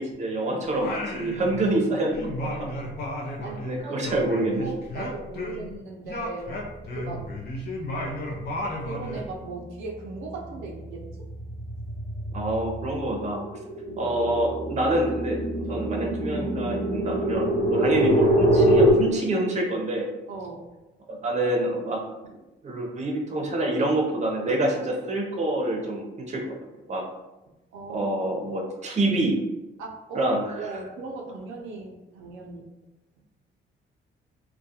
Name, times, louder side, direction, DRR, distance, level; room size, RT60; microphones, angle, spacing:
voice 1, 0.0-2.7 3.6-4.7 12.3-13.4 14.0-20.1 21.1-22.0 22.6-26.4 26.9-27.0 27.9-29.4 30.1-30.4, right 1 dB, 35° right, 0 dB, 0.6 m, -26 dB
Singing, 0.7-1.9 2.1-5.8 6.1-9.3, left 1 dB, 55° left, 0.5 m, -33 dB
voice 2, 3.4-4.3 4.6-6.5 6.9-7.4 8.0-8.3 8.8-11.0 13.9-14.1 15.7-15.9 17.7-17.9 20.3-20.7 27.7-28.3 29.8-30.3 30.6-32.7, right 3 dB, 90° right, -1 dB, 0.5 m, -38 dB
sound 1, 9.2-9.6 10.0-18.9, right 1 dB, 10° left, 1.0 m, -25 dB
2.3 x 2.2 x 2.7 m, 1.0 s
cardioid pair, 90°, 20 cm